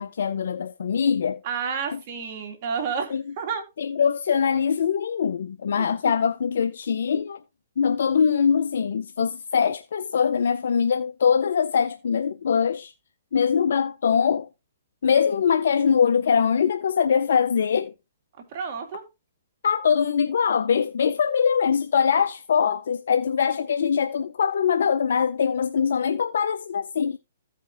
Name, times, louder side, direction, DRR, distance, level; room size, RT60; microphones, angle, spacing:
voice 1, 0.0-1.4 1.9-2.0 3.1-3.2 3.8-7.4 7.8-12.9 13.3-14.5 15.0-17.9 19.6-27.2, left 7 dB, 70° left, 0.5 m, -22 dB
voice 2, 1.4-3.6 5.8-5.9 18.5-19.0, right 6 dB, 40° right, 2.1 m, -30 dB
15.0 x 5.1 x 2.5 m
hypercardioid pair, 140°, 0 cm